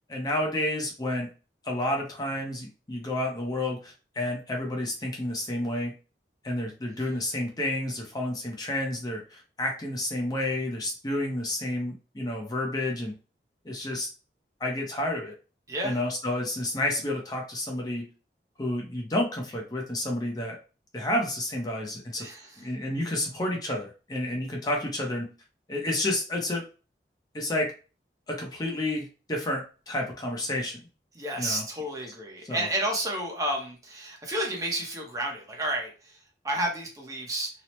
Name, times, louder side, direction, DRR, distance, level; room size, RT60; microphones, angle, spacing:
voice 1, 0.1-1.3 1.6-5.9 6.4-13.1 13.6-14.1 14.6-15.3 15.8-18.1 18.6-20.6 20.9-22.3 22.6-25.3 25.7-26.6 27.3-27.7 28.3-30.8 31.4-31.6 32.5-32.7, left 1 dB, 20° left, 0 dB, 0.5 m, -30 dB
voice 2, 22.2-22.5 31.2-35.9 36.4-37.5, right 1 dB, 20° right, 0 dB, 0.6 m, -31 dB
2.9 x 2.0 x 3.0 m, 0.34 s
head